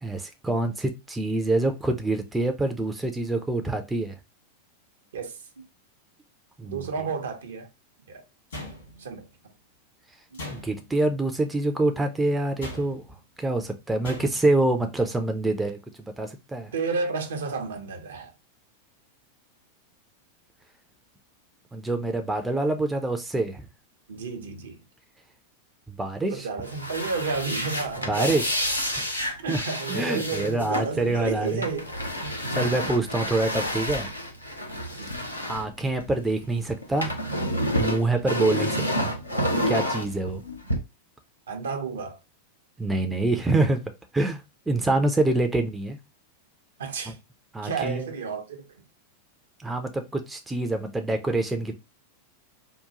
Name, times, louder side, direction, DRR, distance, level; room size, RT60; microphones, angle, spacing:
voice 1, 0.0-4.2 6.6-6.9 10.5-13.0 13.4-16.7 21.7-23.7 26.0-26.5 28.0-28.5 28.9-29.1 29.5-29.6 29.9-31.7 32.3-34.1 35.5-37.1 37.8-39.1 39.7-40.4 42.8-43.8 44.1-46.0 47.5-48.0 49.6-51.7, right 2 dB, 10° right, 0.5 m, -26 dB
voice 2, 6.6-7.7 8.1-8.2 9.0-9.2 10.3-10.4 16.7-18.3 24.1-24.8 26.3-28.4 29.4-31.9 35.0-35.1 41.5-42.2 46.8-47.2 47.6-48.7, right 4 dB, 65° right, 0.7 m, -31 dB
sound 1, 8.5-9.2 10.3-11.0 12.6-13.2 14.0-14.6, left 1 dB, 70° left, 1.7 m, -39 dB
sound 2, 26.6-36.4 36.7-40.7, equal, 85° left, 0.9 m, -29 dB
3.7 x 2.3 x 2.9 m
figure-of-eight pair, 90°, 0 cm